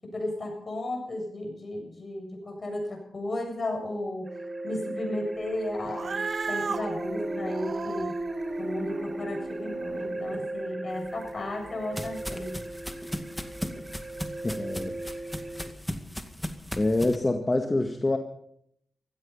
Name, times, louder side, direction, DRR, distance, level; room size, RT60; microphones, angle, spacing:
voice 1, 0.0-4.3 4.6-6.2 6.5-8.1 8.6-12.6, left 1 dB, 50° left, 2 dB, 7.6 m, -34 dB
sound 1, 4.2-15.7, right 1 dB, 35° right, 4.5 m, -36 dB
Cat, 5.8-10.5, right 5 dB, 60° right, 0.8 m, -36 dB
sound 2, 11.0-17.2, equal, 5° left, 2.1 m, -37 dB
voice 2, 14.4-14.9 16.8-18.2, left 2 dB, 30° left, 5 dB, 1.8 m, -26 dB
16.0 x 15.0 x 5.6 m, 0.70 s
supercardioid pair, 45°, 0 cm